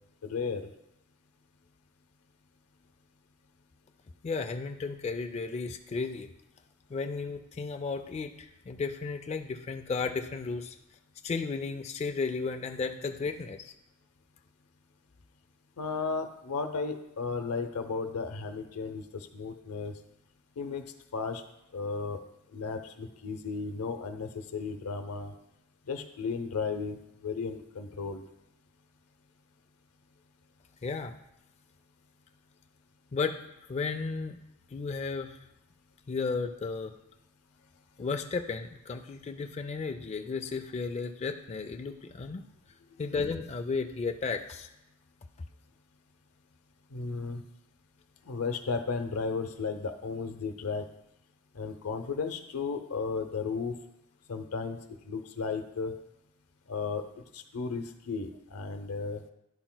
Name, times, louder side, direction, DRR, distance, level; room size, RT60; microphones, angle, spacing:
voice 1, 0.2-0.7 15.8-19.9 20.6-20.8 21.1-21.4 21.7-22.2 22.5-25.3 25.9-28.3 46.9-47.4 48.3-50.9 51.5-53.7 54.3-54.8 55.0-55.9 56.7-57.0 57.3-59.2, left 4 dB, 90° left, 7 dB, 0.7 m, -34 dB
voice 2, 4.2-6.3 6.9-10.8 11.2-13.7 30.8-31.1 33.1-33.4 33.7-34.4 34.7-35.4 36.1-36.9 38.0-42.4 43.0-44.7, left 4 dB, 30° left, 6 dB, 0.3 m, -34 dB
11.0 x 5.9 x 2.2 m, 0.87 s
head